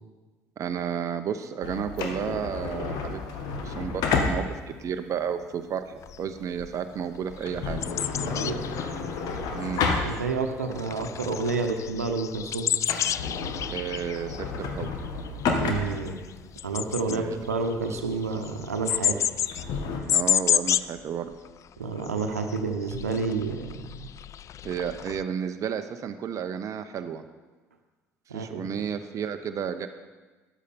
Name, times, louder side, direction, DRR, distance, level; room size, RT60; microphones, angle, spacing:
voice 1, 0.6-4.5 4.8-5.9 6.2-7.9 9.5-9.9 13.7-14.9 17.1-17.4 20.1-21.3 24.6-27.2 28.3-29.9, right 8 dB, 40° right, 8 dB, 0.8 m, -32 dB
sound 1, 1.6-10.6 11.0-11.1 11.7-12.0 12.3-12.4 12.7-20.0, left 4 dB, 55° left, 1.6 m, -31 dB
sound 2, 6.0-6.2 6.6-6.8 7.1-10.5 10.7-21.0 21.3-21.5 21.7-25.2, left 10 dB, 40° left, 0.4 m, -30 dB
voice 2, 8.2-8.7 10.0-12.7 15.6-16.2 16.6-19.2 21.8-24.1 28.3-28.6, right 4 dB, 85° right, 5 dB, 1.0 m, -29 dB
13.5 x 10.0 x 4.4 m, 1.3 s
figure-of-eight pair, 60°, 8 cm